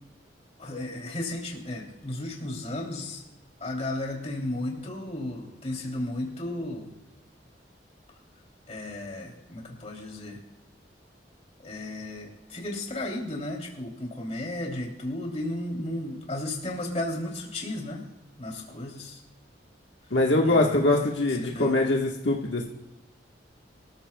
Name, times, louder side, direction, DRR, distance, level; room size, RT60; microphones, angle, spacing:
voice 1, 0.6-3.2 3.6-6.9 8.7-10.4 11.6-18.1 18.4-19.2 20.4-21.1 21.4-21.8, left 1 dB, 40° left, -1 dB, 3.1 m, -34 dB
voice 2, 20.1-22.7, left 2 dB, 85° left, -1 dB, 1.5 m, -23 dB
24.0 x 14.0 x 2.3 m, 1.0 s
head